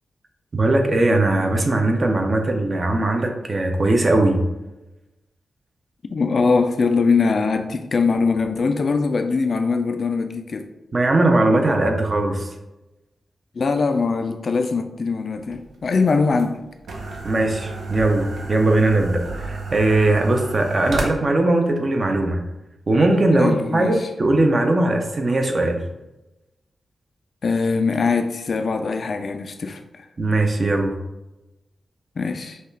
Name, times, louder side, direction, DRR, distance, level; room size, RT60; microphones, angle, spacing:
voice 1, 0.5-4.4 10.9-12.5 17.2-22.4 22.9-25.8 30.2-31.0, right 2 dB, 30° right, 4 dB, 0.5 m, -19 dB
voice 2, 6.1-10.7 13.5-16.6 23.4-24.1 27.4-30.1 32.2-32.6, left 4 dB, 45° left, 7 dB, 0.3 m, -22 dB
sound 1, 15.4-21.0, right 3 dB, 75° right, 0.7 m, -32 dB
5.4 x 2.3 x 3.2 m, 1.0 s
wide cardioid pair, 175°, 0 cm